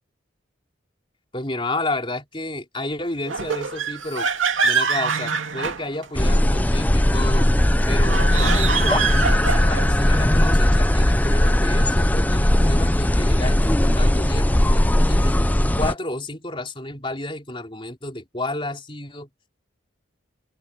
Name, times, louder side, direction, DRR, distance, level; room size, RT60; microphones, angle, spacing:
voice 1, 1.3-4.3 4.6-7.5 7.9-15.3 15.7-19.3, left 2 dB, 25° left, 3.8 m, -31 dB
sound 1, 3.3-6.4 8.0-10.0, right 5 dB, 80° right, 2.5 m, -24 dB
sound 2, 6.2-15.9, left 1 dB, 10° left, 0.5 m, -18 dB
Breathing, 7.7-9.1 10.1-11.5 12.5-13.9, equal, 15° right, 4.7 m, -43 dB
head